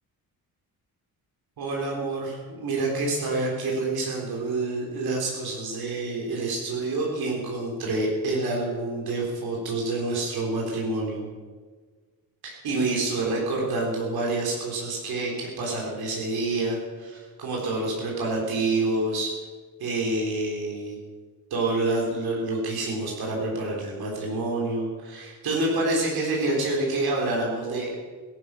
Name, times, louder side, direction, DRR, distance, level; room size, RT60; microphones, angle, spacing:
voice 1, 1.6-11.3 12.4-19.3 19.8-21.0 21.5-28.0, right 2 dB, 85° right, -2 dB, 3.6 m, -27 dB
17.5 x 11.5 x 6.1 m, 1.5 s
wide cardioid pair, 165°, 36 cm